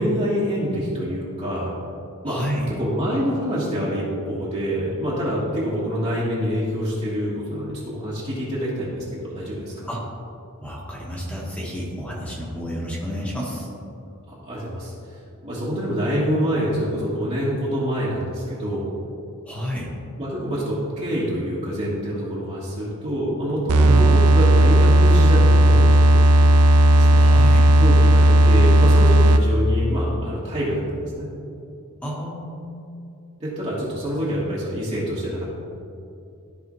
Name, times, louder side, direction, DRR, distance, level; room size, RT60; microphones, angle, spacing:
voice 1, 0.0-1.7 2.2-2.4 2.7-9.9 14.3-14.9 15.4-18.9 20.2-26.1 26.9-27.2 27.8-31.3 33.4-35.5, equal, 30° right, -9 dB, 1.5 m, -26 dB
voice 2, 2.2-2.6 9.9-10.0 10.6-13.7 19.5-19.9 23.9-24.1 27.2-27.7 32.0-32.7, equal, 5° left, -5 dB, 1.5 m, -29 dB
sound 1, 23.7-29.6, right 1 dB, 80° right, 0.5 m, -14 dB
13.5 x 4.8 x 3.1 m, 2.6 s
head